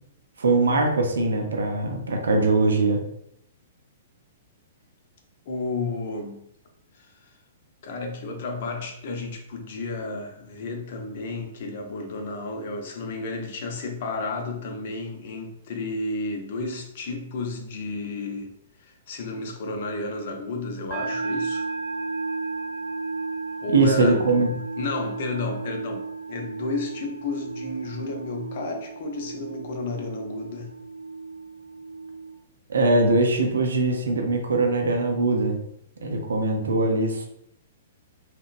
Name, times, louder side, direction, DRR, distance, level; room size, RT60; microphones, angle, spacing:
voice 1, 0.4-3.0 23.7-24.5 32.7-35.6 36.0-37.3, right 2 dB, 70° right, 3 dB, 0.5 m, -21 dB
voice 2, 5.5-6.4 6.9-7.3 7.8-18.5 18.8-21.7 23.6-24.5 24.8-30.7, left 3 dB, 50° left, 3 dB, 0.5 m, -32 dB
sound 1, 20.9-32.3, right 3 dB, 35° right, 0.8 m, -34 dB
2.9 x 2.1 x 2.4 m, 0.74 s
figure-of-eight pair, 110°, 0 cm